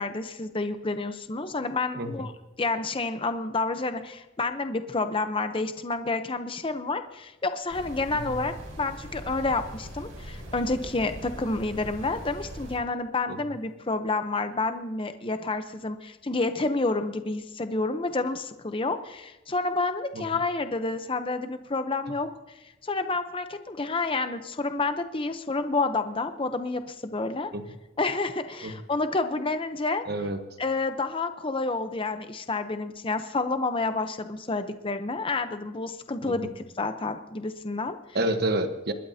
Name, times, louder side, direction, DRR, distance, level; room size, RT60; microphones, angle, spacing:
voice 1, 0.0-2.3 2.6-22.3 22.8-27.5 28.0-30.0 30.6-38.0, left 3 dB, 25° left, 9 dB, 0.7 m, -29 dB
sound 1, 7.7-12.8, equal, 85° right, 4.4 m, -41 dB
voice 2, 30.1-30.4 36.2-36.5 38.1-38.9, right 1 dB, 50° right, 7 dB, 1.2 m, -29 dB
28.5 x 12.5 x 2.8 m, 1.0 s
head